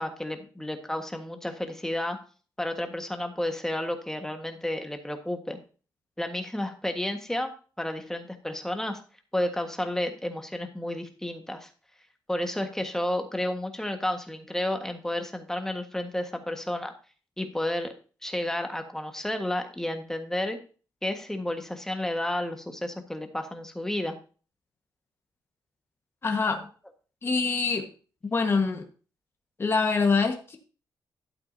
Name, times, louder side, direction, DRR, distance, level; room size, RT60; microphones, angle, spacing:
voice 1, 0.0-2.2 2.6-5.6 6.2-9.0 9.3-11.7 12.3-16.9 17.4-17.9 18.2-20.6 21.0-24.1, left 1 dB, 5° left, 5 dB, 1.5 m, -31 dB
voice 2, 26.2-26.7 27.2-27.9 28.2-28.8 29.6-30.6, left 4 dB, 30° left, 2 dB, 1.4 m, -25 dB
12.0 x 8.1 x 2.7 m, 0.37 s
cardioid pair, 105°, 8 cm